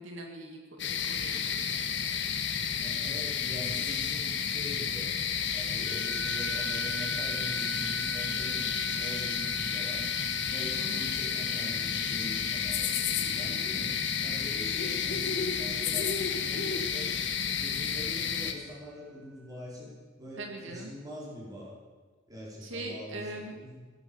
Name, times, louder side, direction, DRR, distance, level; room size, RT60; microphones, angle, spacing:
voice 1, 0.0-1.9 10.8-11.1 20.4-20.9 22.6-23.6, right 2 dB, 85° right, 2 dB, 2.0 m, -42 dB
sound 1, 0.8-18.5, left 7 dB, 65° left, 1.3 m, -31 dB
voice 2, 2.8-5.2 5.5-10.1 10.5-13.9 14.2-17.1 17.4-21.8 22.3-23.8, equal, 20° right, -5 dB, 4.4 m, -44 dB
sound 2, 5.8-18.0, right 4 dB, 70° right, 2.6 m, -44 dB
16.0 x 10.0 x 7.1 m, 1.4 s
head